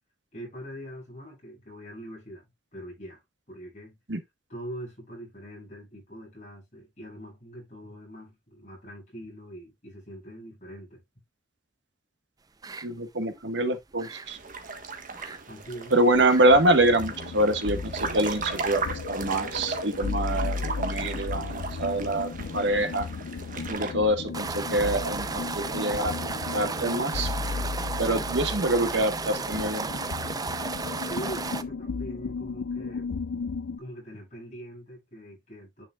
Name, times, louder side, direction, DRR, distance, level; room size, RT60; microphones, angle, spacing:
voice 1, 0.3-2.5 2.7-3.2 3.5-4.0 4.5-11.0 15.5-15.9 31.1-33.1 33.8-35.9, right 1 dB, 40° left, 6.3 m, -42 dB
sound 1, 12.6-12.9 13.2-13.4 13.7-14.3 15.1-15.4 15.7-15.8 16.1-16.4 16.8-16.9 17.5-17.6 20.4-20.6 21.0-21.1 24.0-31.6, right 4 dB, 20° right, 0.5 m, -34 dB
voice 2, 12.8-14.4 15.9-18.8 19.1-23.1 23.7-26.1 26.5-27.3 28.0-29.9, right 1 dB, 70° right, 1.4 m, -25 dB
sound 2, 14.2-23.9, right 4 dB, 50° right, 1.4 m, -37 dB
sound 3, 16.4-33.8, left 4 dB, 85° left, 0.5 m, -35 dB
9.9 x 6.0 x 2.3 m
head